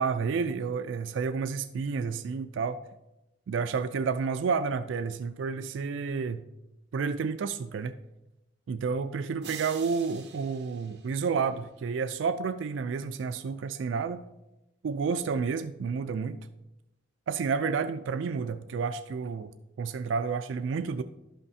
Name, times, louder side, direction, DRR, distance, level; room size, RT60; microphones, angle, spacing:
voice 1, 0.0-2.8 3.5-6.4 6.9-7.9 8.7-14.2 14.8-16.4 17.3-19.5 19.8-21.0, right 5 dB, 80° right, 10 dB, 0.3 m, -30 dB
sound 1, 9.4-11.8, right 7 dB, 60° right, 0.8 m, -47 dB
11.5 x 5.7 x 2.7 m, 0.92 s
head